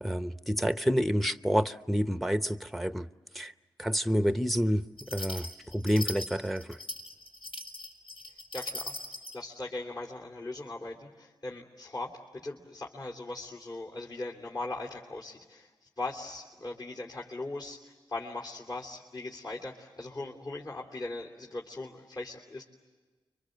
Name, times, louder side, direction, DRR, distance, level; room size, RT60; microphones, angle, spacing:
voice 1, 0.0-3.1 3.3-3.5 3.8-4.9 5.1-6.8, equal, ahead, 0.8 m, -28 dB
sound 1, 5.0-9.4, left 1 dB, 70° left, 5.8 m, -40 dB
voice 2, 8.5-9.0 9.3-22.6, left 2 dB, 45° left, 3.0 m, -39 dB
29.5 x 24.5 x 7.9 m
cardioid pair, 50°, 9 cm